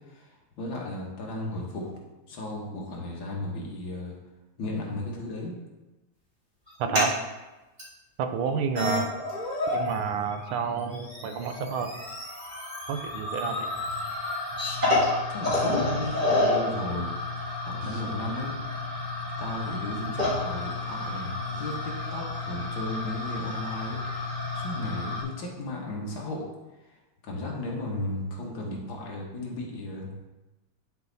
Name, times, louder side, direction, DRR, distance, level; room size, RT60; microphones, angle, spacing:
voice 1, 0.6-1.9 2.3-4.2 4.6-5.6 15.3-17.1 17.7-18.5 19.4-21.7 22.1-26.5 27.2-30.3, left 1 dB, 65° left, -1 dB, 2.2 m, -35 dB
sound 1, 6.7-7.1 7.8-7.9 8.5-8.6 8.7-10.0 10.3-25.2, left 2 dB, 20° right, 2.7 m, -30 dB
voice 2, 6.8-7.2 8.2-9.1 9.7-12.0 12.9-13.7, right 6 dB, 80° right, 8 dB, 1.5 m, -29 dB
sound 2, 16.0-16.3 17.8-18.1 18.5-18.8 20.3-20.6 21.2-21.9 22.8-22.9, right 1 dB, 60° right, 3.4 m, -48 dB
10.5 x 4.8 x 4.0 m, 1.1 s
omnidirectional pair, 2.3 m